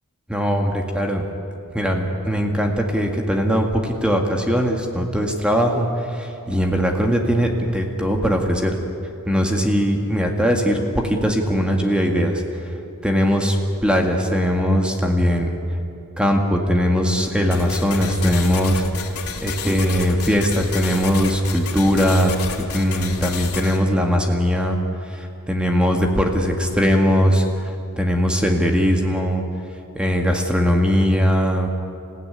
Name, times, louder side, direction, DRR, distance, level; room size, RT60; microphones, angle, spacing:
voice 1, 0.3-1.2 1.7-8.8 9.3-12.7 13.0-15.5 16.2-22.3 22.6-31.7, equal, 5° right, 2 dB, 1.9 m, -20 dB
sound 1, 17.5-23.8, left 5 dB, 85° left, 2.7 m, -31 dB
27.5 x 16.0 x 9.9 m, 2.7 s
head